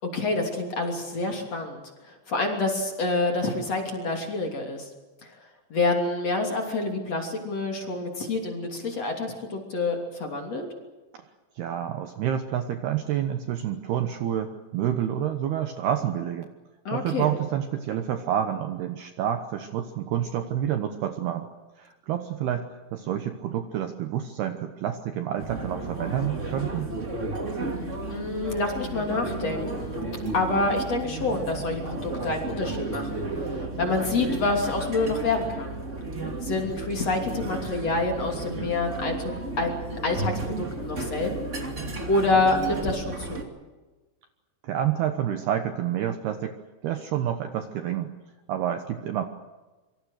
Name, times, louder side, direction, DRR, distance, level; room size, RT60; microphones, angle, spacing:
voice 1, 0.0-4.9 5.2-5.4 5.7-10.7 16.9-17.3 28.1-30.0 30.3-35.8 36.4-41.6 42.1-43.5, left 2 dB, 35° left, 2 dB, 3.5 m, -27 dB
voice 2, 11.6-16.5 16.9-21.5 21.8-22.7 22.9-26.9 44.6-46.6 46.8-48.1 48.5-49.2, right 10 dB, 70° right, 7 dB, 2.6 m, -28 dB
sound 1, 25.4-43.4, right 2 dB, 25° right, 1.7 m, -33 dB
26.5 x 24.0 x 6.5 m, 1.2 s
omnidirectional pair, 5.7 m